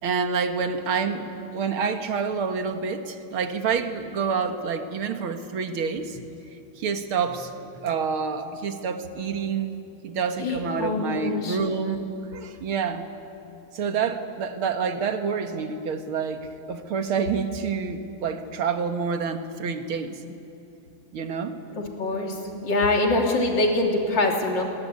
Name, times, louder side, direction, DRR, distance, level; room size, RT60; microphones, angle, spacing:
voice 1, 0.0-6.2 6.8-9.8 10.0-12.0 12.3-13.1 13.7-20.2 21.1-21.6, right 5 dB, 70° right, 7 dB, 2.4 m, -28 dB
voice 2, 10.4-11.6 21.8-24.6, left 2 dB, 55° left, 1 dB, 3.9 m, -24 dB
28.0 x 22.0 x 9.6 m, 2.8 s
omnidirectional pair, 2.4 m